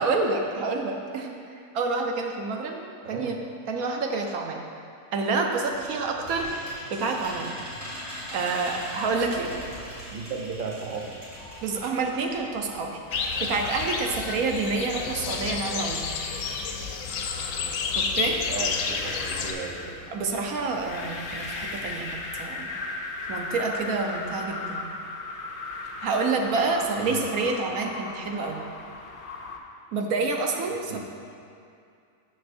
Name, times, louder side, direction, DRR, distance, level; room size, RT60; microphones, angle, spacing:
voice 1, 0.0-3.4 3.7-4.6 5.1-6.5 6.9-7.5 8.3-9.5 11.6-13.0 13.4-16.1 17.9-18.4 20.1-22.7 23.3-24.8 26.0-28.6 29.9-31.0, right 3 dB, 80° right, 2 dB, 1.2 m, -28 dB
sound 1, 5.5-12.4 12.7-12.8 13.1-13.2, equal, 60° right, 2.5 m, -40 dB
voice 2, 10.1-11.1 18.5-20.0 27.0-27.2 30.7-31.0, right 4 dB, 45° right, 1 dB, 0.8 m, -35 dB
sound 2, 11.1-29.6, left 3 dB, 50° left, 0.7 m, -38 dB
sound 3, 13.1-19.5, left 5 dB, 70° left, 1.0 m, -30 dB
12.5 x 6.5 x 2.6 m, 2.5 s
omnidirectional pair, 1.5 m